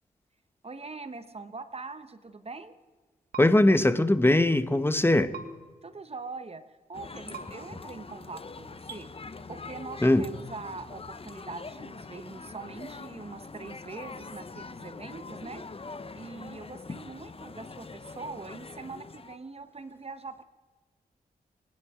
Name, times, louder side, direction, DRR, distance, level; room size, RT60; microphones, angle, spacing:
voice 1, 0.6-2.7 5.8-6.6 6.9-9.1 9.5-15.6 16.1-20.4, right 3 dB, 40° right, 11 dB, 1.2 m, -42 dB
sound 1, 3.3-3.5 5.3-5.5 7.3-7.4 8.9-9.0, right 6 dB, 70° right, 1.7 m, -40 dB
voice 2, 3.4-5.3 10.0-10.2, left 1 dB, 15° left, 13 dB, 1.1 m, -21 dB
sound 2, 6.9-19.4, left 4 dB, 35° left, 1.0 m, -43 dB
26.0 x 9.8 x 5.0 m, 1.3 s
cardioid pair, 55°, 16 cm